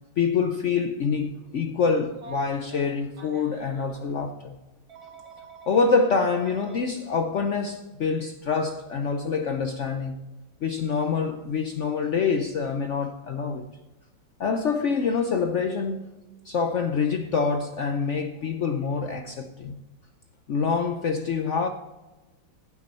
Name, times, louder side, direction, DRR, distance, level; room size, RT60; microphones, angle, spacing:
voice 1, 0.2-4.6 5.7-10.2 10.6-13.6 14.4-16.1 16.4-19.8 20.5-21.7, left 5 dB, 65° left, 0.7 m, -26 dB
Telephone, 2.1-4.0 4.9-6.8 8.1-8.3 9.8-10.0, right 5 dB, 55° right, 2.2 m, -46 dB
15.5 x 6.1 x 4.3 m
omnidirectional pair, 2.0 m